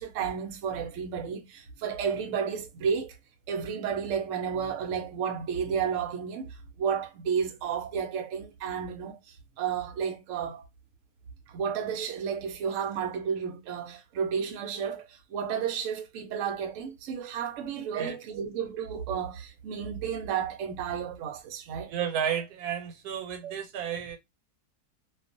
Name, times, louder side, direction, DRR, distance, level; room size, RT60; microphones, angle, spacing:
voice 1, 0.0-3.1 3.5-9.2 9.6-10.6 11.5-21.9 23.4-23.5, right 7 dB, 65° right, 0.8 m, -32 dB
voice 2, 21.9-24.2, right 8 dB, 85° right, 1.2 m, -32 dB
2.5 x 2.3 x 2.5 m
omnidirectional pair, 1.6 m